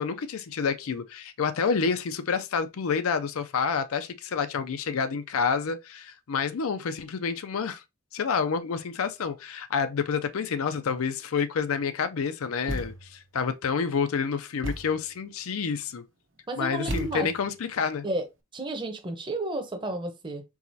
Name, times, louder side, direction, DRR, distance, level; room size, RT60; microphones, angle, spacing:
voice 1, 0.0-7.8 8.1-16.0 16.6-18.0, left 5 dB, 80° left, 0.5 m, -28 dB
Thump thud, 12.7-13.2 14.6-15.1 16.9-17.5, equal, 60° right, 0.9 m, -34 dB
voice 2, 16.5-17.3 18.0-18.2 18.5-20.4, right 2 dB, 25° right, 0.8 m, -32 dB
4.7 x 4.1 x 2.7 m
head